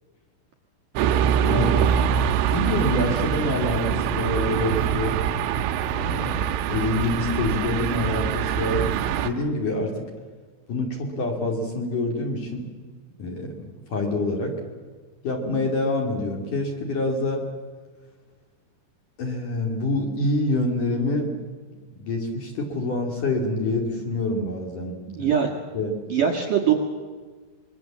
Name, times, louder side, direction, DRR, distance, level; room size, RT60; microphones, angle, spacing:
sound 1, 0.9-9.3, right 8 dB, 80° right, 3.6 m, -24 dB
voice 1, 1.4-2.0 2.5-5.2 5.9-9.9 10.7-12.6 13.2-13.5 13.9-14.6 15.2-17.5 19.2-21.3 22.0-25.3 25.7-25.9, left 2 dB, 45° left, 1 dB, 3.4 m, -26 dB
voice 2, 25.1-25.5 26.1-26.7, right 8 dB, 60° right, 2 dB, 2.3 m, -21 dB
26.0 x 22.0 x 7.4 m, 1.4 s
omnidirectional pair, 5.9 m